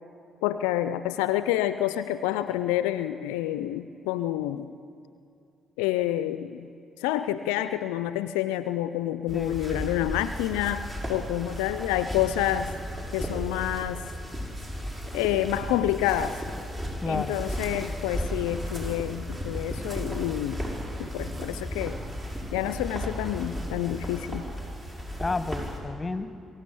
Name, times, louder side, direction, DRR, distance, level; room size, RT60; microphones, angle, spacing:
voice 1, 0.4-4.7 5.8-6.7 7.0-12.7 13.1-14.0 15.1-16.4 17.1-20.6 21.0-22.0 22.5-24.5, left 13 dB, 80° left, 12 dB, 0.5 m, -28 dB
voice 2, 9.3-9.8 17.0-17.4 25.2-26.4, left 3 dB, 25° left, 11 dB, 1.3 m, -31 dB
sound 1, 9.3-25.8, equal, 25° right, 6.3 m, -35 dB
23.0 x 14.0 x 8.6 m, 2.5 s
hypercardioid pair, 45°, 0 cm